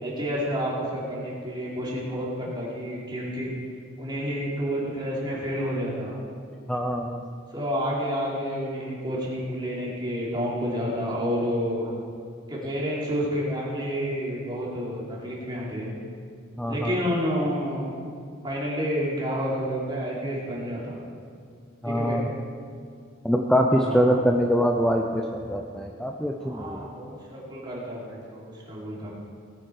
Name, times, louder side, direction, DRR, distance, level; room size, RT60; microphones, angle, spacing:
voice 1, 0.0-3.5 4.0-6.2 7.5-11.9 12.5-15.9 16.7-17.9 18.4-21.0 21.9-22.2 23.7-24.2 26.4-29.1, equal, 20° right, -6 dB, 3.4 m, -29 dB
voice 2, 6.7-7.2 16.6-16.9 21.8-22.3 23.2-26.8, equal, 5° left, 1 dB, 0.6 m, -24 dB
19.0 x 8.5 x 4.9 m, 2.2 s
head